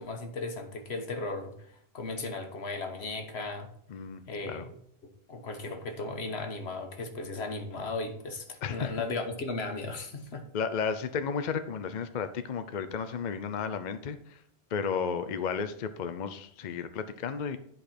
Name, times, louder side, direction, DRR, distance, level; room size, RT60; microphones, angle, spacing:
voice 1, 0.0-3.7 4.3-4.7 5.3-10.4, left 3 dB, 80° left, 5 dB, 1.5 m, -36 dB
voice 2, 3.9-4.7 8.6-9.0 10.5-14.4 14.7-17.6, left 6 dB, 50° left, 10 dB, 0.7 m, -33 dB
10.5 x 5.0 x 4.3 m, 0.68 s
omnidirectional pair, 1.1 m